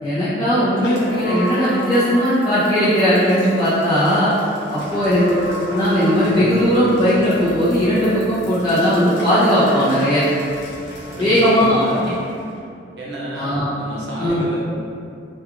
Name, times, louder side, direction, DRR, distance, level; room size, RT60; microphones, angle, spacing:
voice 1, 0.0-4.3 4.7-10.2 11.2-11.8 13.3-13.7 14.2-14.4, equal, 20° left, -13 dB, 0.5 m, -17 dB
sound 1, 0.7-12.6, equal, 70° left, 0.8 m, -33 dB
voice 2, 11.1-12.2 13.0-14.6, right 1 dB, 65° right, -6 dB, 0.6 m, -30 dB
2.4 x 2.2 x 3.0 m, 2.5 s
head